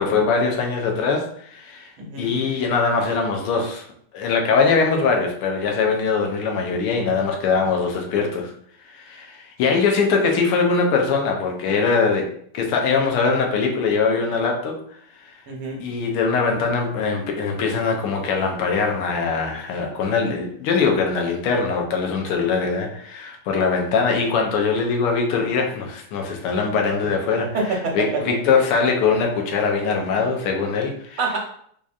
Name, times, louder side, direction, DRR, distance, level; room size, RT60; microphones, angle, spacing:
voice 1, 0.0-1.9 2.2-3.8 4.1-8.5 8.9-12.3 12.5-14.8 15.2-15.3 15.8-31.2, left 5 dB, 90° left, 2 dB, 1.6 m, -22 dB
voice 2, 2.0-2.3 15.5-15.8 27.5-28.2 31.2-31.4, right 3 dB, 80° right, -1 dB, 1.8 m, -26 dB
4.8 x 2.6 x 2.3 m, 0.63 s
omnidirectional pair, 2.4 m